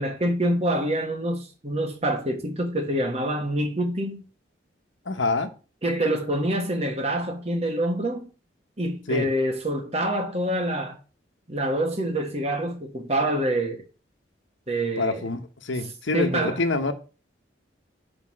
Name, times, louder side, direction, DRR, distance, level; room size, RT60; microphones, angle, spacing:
voice 1, 0.0-4.2 5.8-8.3 8.8-11.0 11.5-13.8 14.7-15.3 16.1-16.6, right 1 dB, 35° right, 1.4 m, -26 dB
voice 2, 5.1-5.5 9.1-9.3 15.0-16.9, left 3 dB, 90° left, 1.0 m, -26 dB
5.9 x 5.1 x 6.2 m
head